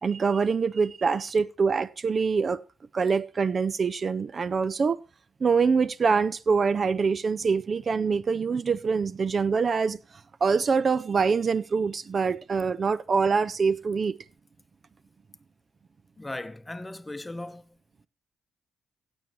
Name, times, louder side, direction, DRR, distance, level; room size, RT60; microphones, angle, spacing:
voice 1, 0.0-2.6 2.9-5.0 5.4-10.0 10.4-14.2, right 5 dB, 45° right, 0.4 m, -25 dB
voice 2, 16.2-17.7, left 2 dB, 20° left, 0.8 m, -37 dB
16.5 x 7.9 x 3.0 m
hypercardioid pair, 40°, 0 cm